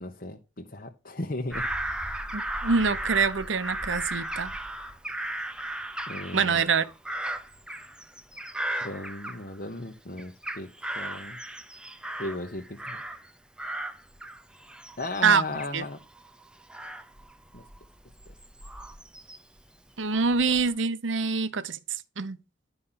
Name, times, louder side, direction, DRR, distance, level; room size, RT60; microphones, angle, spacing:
voice 1, 0.0-1.7 6.1-6.6 8.8-10.7 11.0-11.4 12.2-13.0 15.0-16.0 17.5-17.6, left 2 dB, 45° left, 1.1 m, -36 dB
Bird vocalization bird call bird song / Crow, 1.5-9.8 10.2-13.3 13.6-19.6 20.1-20.7, right 1 dB, 5° right, 0.7 m, -36 dB
voice 2, 2.3-4.5 6.3-6.9 15.2-15.4 15.7-15.8 20.0-21.8 22.2-22.4, right 5 dB, 75° right, 0.9 m, -25 dB
11.5 x 5.6 x 5.8 m
head